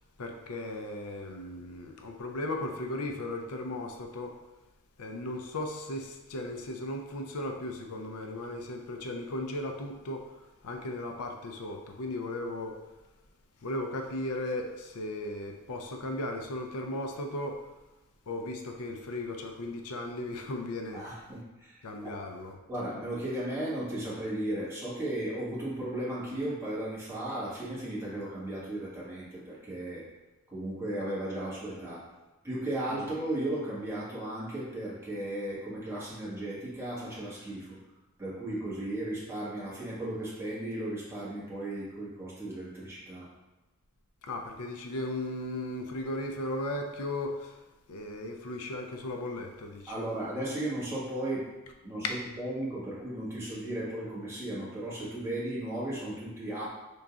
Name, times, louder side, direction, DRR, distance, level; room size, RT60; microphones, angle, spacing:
voice 1, 0.2-4.4 5.0-10.3 10.6-12.8 13.6-17.6 18.3-21.0 21.8-22.6 32.9-33.1 44.2-47.6 47.9-50.0, left 1 dB, 90° left, 3 dB, 0.6 m, -36 dB
voice 2, 20.9-21.7 22.0-22.2 22.7-30.0 30.5-32.1 32.4-37.8 38.2-43.3 49.9-51.5 51.8-56.7, right 1 dB, 10° right, -9 dB, 1.5 m, -35 dB
5.4 x 3.8 x 2.4 m, 1.1 s
head